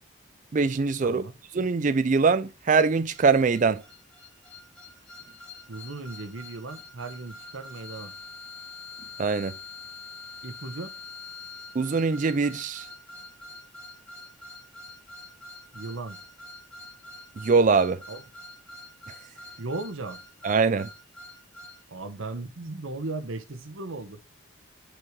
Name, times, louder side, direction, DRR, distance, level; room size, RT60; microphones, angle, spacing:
voice 1, 0.5-1.2 1.5-3.8 9.2-9.5 11.7-12.9 17.4-18.0 20.4-20.9, right 4 dB, 40° right, 0.4 m, -22 dB
voice 2, 1.0-1.3 5.7-8.1 10.4-10.9 15.7-16.2 18.1-18.2 19.6-20.2 21.9-24.2, right 3 dB, 70° right, 1.0 m, -36 dB
sound 1, 3.1-21.8, left 2 dB, 5° left, 2.4 m, -45 dB
6.2 x 4.7 x 3.7 m
head